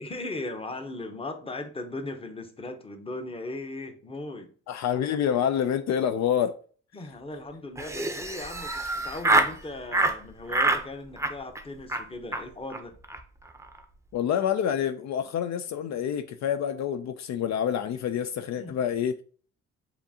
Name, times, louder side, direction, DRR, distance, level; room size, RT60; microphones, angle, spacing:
voice 1, 0.0-4.5 6.9-13.0 18.6-18.8, left 2 dB, 20° left, 0.8 m, -38 dB
voice 2, 4.7-6.6 14.1-19.2, left 9 dB, 65° left, 0.4 m, -27 dB
Laughter, 7.8-9.6 9.9-10.2 10.5-10.8 11.2-11.6 11.9-12.0 12.3-12.4 12.7-12.8 13.0-13.2 13.5-13.8, right 2 dB, 10° right, 0.6 m, -26 dB
7.1 x 2.7 x 2.7 m
cardioid pair, 90°, 30 cm